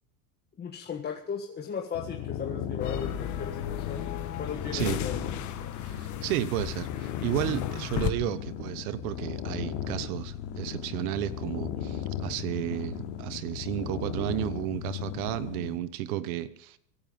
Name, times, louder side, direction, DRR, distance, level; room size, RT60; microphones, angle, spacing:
voice 1, 0.6-4.0 4.4-5.3, left 6 dB, 20° left, 1 dB, 1.7 m, -36 dB
sound 1, 1.9-15.8, left 9 dB, 60° left, 3.1 m, -36 dB
sound 2, 2.8-5.8, left 10 dB, 80° left, 4.7 m, -39 dB
sound 3, 2.8-8.1, left 12 dB, 40° left, 1.6 m, -37 dB
voice 2, 5.8-16.8, right 13 dB, 65° right, 15 dB, 1.1 m, -32 dB
24.5 x 9.6 x 5.4 m, 0.74 s
supercardioid pair, 130°, 46 cm